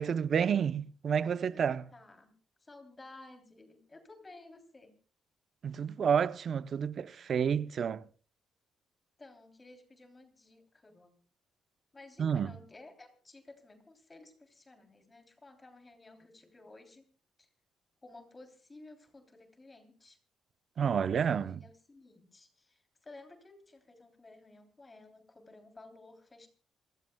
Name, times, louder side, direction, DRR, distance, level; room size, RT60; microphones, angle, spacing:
voice 1, 0.0-1.9 5.6-8.0 12.2-12.5 20.8-21.6, right 7 dB, 55° right, 0.7 m, -30 dB
voice 2, 1.2-2.3 2.6-5.0 7.2-7.3 9.2-11.2 11.9-17.0 17.4-17.5 18.0-20.2 21.1-26.5, left 2 dB, 25° left, 3.2 m, -55 dB
27.5 x 16.0 x 2.3 m
cardioid pair, 90°, 0 cm